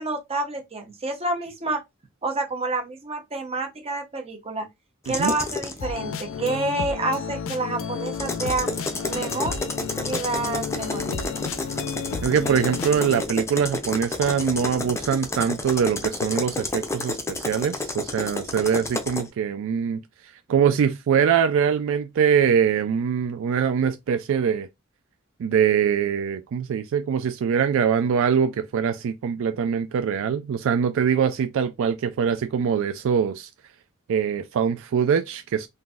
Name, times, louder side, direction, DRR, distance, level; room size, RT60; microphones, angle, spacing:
voice 1, 0.0-1.8 2.2-4.7 5.1-8.7 9.1-9.6 10.0-11.3, right 2 dB, 30° right, 0.8 m, -28 dB
sound 1, 5.0-5.8 8.1-19.3, left 2 dB, 15° left, 0.5 m, -30 dB
sound 2, 5.8-13.2, left 6 dB, 65° left, 0.4 m, -32 dB
voice 2, 12.2-20.0 20.5-24.7 25.4-33.5 34.1-35.7, right 7 dB, 65° right, 0.3 m, -23 dB
3.8 x 2.6 x 2.4 m
head